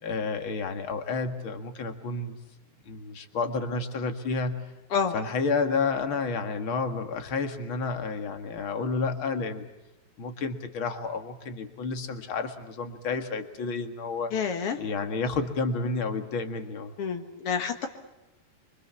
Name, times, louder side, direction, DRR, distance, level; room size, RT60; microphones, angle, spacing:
voice 1, 0.0-2.3 2.8-4.6 5.1-9.7 10.2-14.3 14.8-16.9, left 4 dB, 50° left, 7 dB, 1.6 m, -30 dB
voice 2, 14.3-14.8 17.0-17.9, left 6 dB, 80° left, 6 dB, 1.2 m, -28 dB
27.5 x 24.5 x 7.1 m, 1.0 s
omnidirectional pair, 5.0 m